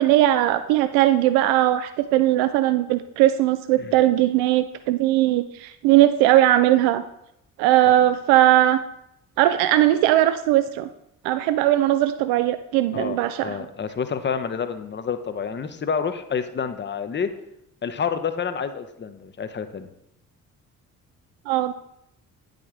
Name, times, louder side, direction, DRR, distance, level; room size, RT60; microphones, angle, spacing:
voice 1, 0.0-7.0 7.6-8.8 9.4-10.9 11.2-13.7 21.5-21.7, right 14 dB, 60° right, 11 dB, 0.5 m, -19 dB
voice 2, 12.9-17.3 17.8-19.9, left 6 dB, 25° left, 10 dB, 0.7 m, -28 dB
9.5 x 5.1 x 3.6 m, 0.80 s
figure-of-eight pair, 40°, 43 cm